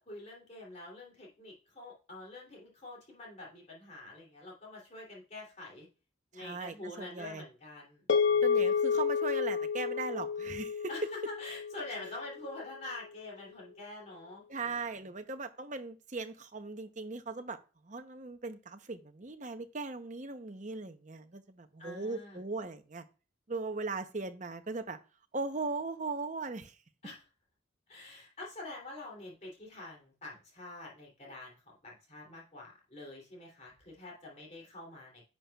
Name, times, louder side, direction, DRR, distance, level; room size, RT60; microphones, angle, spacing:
voice 1, 0.0-5.9 6.3-8.4 10.9-14.5 21.8-22.4 27.0-27.2 27.9-35.2, left 2 dB, 35° left, -2 dB, 2.9 m, -46 dB
voice 2, 6.3-7.4 8.4-10.9 14.5-17.6 17.8-23.0 23.5-25.0 25.3-26.8, right 3 dB, 40° right, 8 dB, 0.7 m, -39 dB
sound 1, 8.1-12.6, left 6 dB, 60° left, 1.1 m, -30 dB
10.5 x 7.3 x 2.3 m, 0.34 s
head